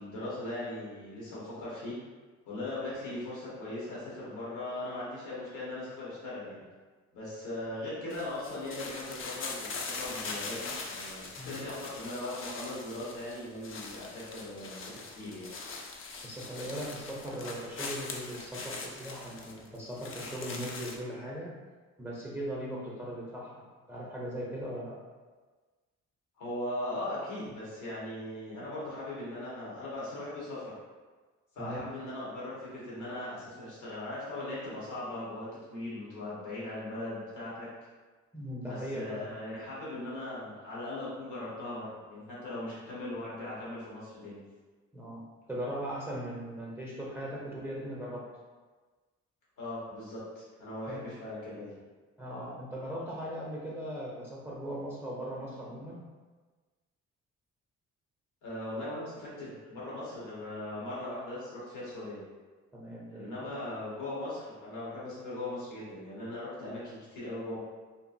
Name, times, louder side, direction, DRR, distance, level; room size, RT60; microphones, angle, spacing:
voice 1, 0.0-2.0 2.4-6.6 7.1-15.5 26.4-30.7 31.5-37.7 38.7-44.4 49.6-51.7 58.4-62.2 63.1-67.6, left 1 dB, 85° left, -8 dB, 1.3 m, -39 dB
sound 1, 8.1-21.0, left 3 dB, 45° left, 0.4 m, -42 dB
voice 2, 16.2-21.5 22.0-25.0 31.6-31.9 38.3-39.3 44.9-48.3 50.9-51.0 52.2-56.0 62.7-63.5, equal, 10° right, -5 dB, 0.5 m, -39 dB
2.9 x 2.5 x 2.5 m, 1.4 s
cardioid pair, 90°, 30 cm